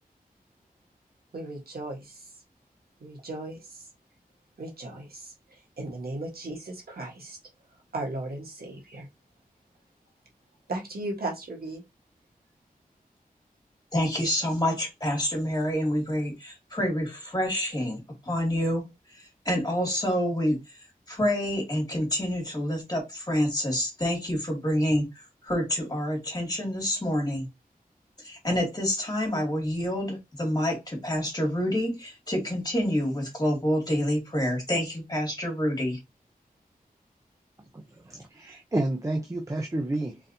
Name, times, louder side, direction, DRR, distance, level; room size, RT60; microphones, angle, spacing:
voice 1, 1.3-2.3 3.0-3.9 4.6-7.4 7.9-9.1 10.7-11.8, right 2 dB, 85° right, 1.5 m, -36 dB
voice 2, 13.9-20.8 21.1-27.5 28.2-36.0, equal, 25° left, 2.4 m, -28 dB
voice 3, 37.7-40.2, right 2 dB, 20° right, 0.7 m, -30 dB
3.9 x 3.8 x 2.8 m
wide cardioid pair, 90°, 15 cm